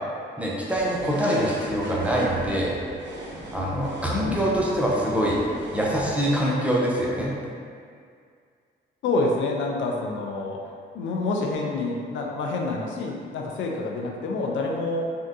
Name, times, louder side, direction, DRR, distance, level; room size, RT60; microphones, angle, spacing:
voice 1, 0.4-2.8 3.5-5.4 5.7-7.3, right 1 dB, 5° right, -5 dB, 0.5 m, -24 dB
sound 1, 0.7-6.3, right 1 dB, 65° right, 0.6 m, -40 dB
voice 2, 4.1-4.4 9.0-10.6 10.9-15.1, left 2 dB, 70° left, 0 dB, 0.4 m, -27 dB
3.6 x 2.2 x 2.6 m, 2.2 s
cardioid pair, 90°, 20 cm